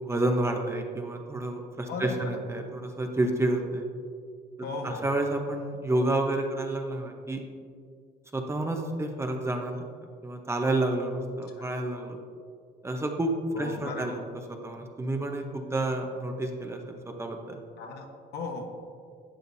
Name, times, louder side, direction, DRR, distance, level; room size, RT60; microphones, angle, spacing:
voice 1, 0.0-3.9 4.8-7.4 8.3-9.8 10.2-12.2 12.8-14.2 14.6-17.6, right 2 dB, 15° right, 3 dB, 0.9 m, -29 dB
voice 2, 1.9-2.3 4.6-5.1 11.6-11.7 13.5-14.2 17.8-18.1 18.3-18.6, left 3 dB, 70° left, 2 dB, 1.3 m, -36 dB
11.5 x 8.0 x 2.7 m, 2.1 s
cardioid pair, 110°, 17 cm